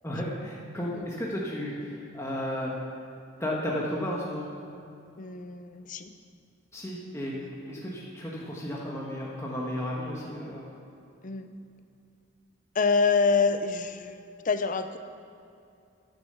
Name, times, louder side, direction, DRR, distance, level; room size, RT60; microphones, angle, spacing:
voice 1, 0.0-2.8 3.4-4.5 6.7-10.7, equal, 15° left, -5 dB, 1.2 m, -33 dB
voice 2, 5.2-6.1 7.4-7.5 11.2-11.5 12.7-15.0, left 4 dB, 40° left, 9 dB, 0.5 m, -26 dB
10.0 x 7.0 x 6.8 m, 2.6 s
head